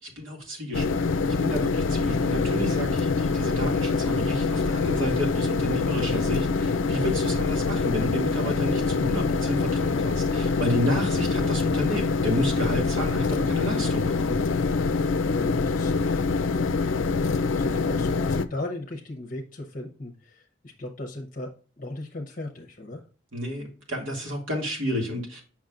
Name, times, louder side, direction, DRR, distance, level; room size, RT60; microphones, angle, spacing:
voice 1, 0.0-14.4 23.3-25.4, equal, 80° right, 0 dB, 2.3 m, -30 dB
sound 1, 0.7-18.5, left 4 dB, 75° left, 0.5 m, -25 dB
voice 2, 15.3-23.0, left 1 dB, 40° left, 1 dB, 0.8 m, -38 dB
7.2 x 6.0 x 2.5 m, 0.38 s
head